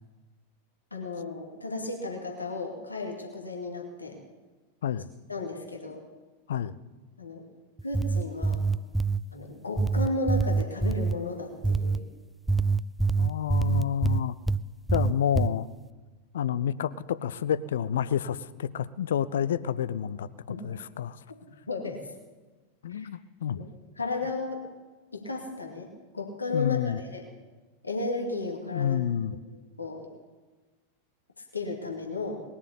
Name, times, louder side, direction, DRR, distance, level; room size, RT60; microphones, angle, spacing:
voice 1, 0.9-4.2 5.3-6.0 7.2-7.4 7.8-8.6 9.3-12.1 20.5-20.7 21.7-22.1 22.9-23.1 23.5-23.7 24.0-24.6 25.1-25.9 26.1-27.2 27.8-29.0 29.5-30.1 31.4-32.4, left 3 dB, 80° left, 1 dB, 2.2 m, -34 dB
sound 1, 7.8-9.2 9.8-11.2 11.6-12.0 12.5-14.6 14.9-15.5, right 4 dB, 5° right, 0.4 m, -25 dB
voice 2, 13.2-14.3 14.9-15.7 16.3-20.3 20.6-21.2 22.8-23.6 26.5-27.0 28.7-29.4, left 9 dB, 60° left, 17 dB, 0.6 m, -29 dB
20.0 x 7.2 x 8.4 m, 1.3 s
figure-of-eight pair, 90°, 0 cm